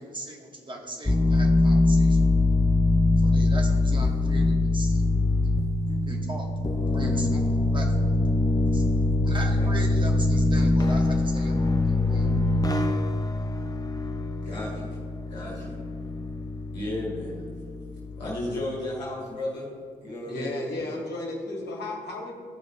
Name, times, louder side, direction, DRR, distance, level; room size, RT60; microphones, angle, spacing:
voice 1, 0.0-2.3 3.2-5.0 5.8-6.5 6.9-8.1 8.7-8.9 9.2-12.5, right 1 dB, 20° right, 0 dB, 1.3 m, -38 dB
sound 1, 1.1-18.5, left 2 dB, 15° left, 0.7 m, -23 dB
voice 2, 14.4-15.0 15.3-15.8 16.7-17.4 18.2-19.7 20.0-21.0, left 1 dB, 85° left, -4 dB, 1.3 m, -34 dB
voice 3, 20.2-22.3, left 2 dB, 55° left, -1 dB, 1.7 m, -33 dB
13.0 x 5.0 x 2.6 m, 2.3 s
figure-of-eight pair, 40°, 21 cm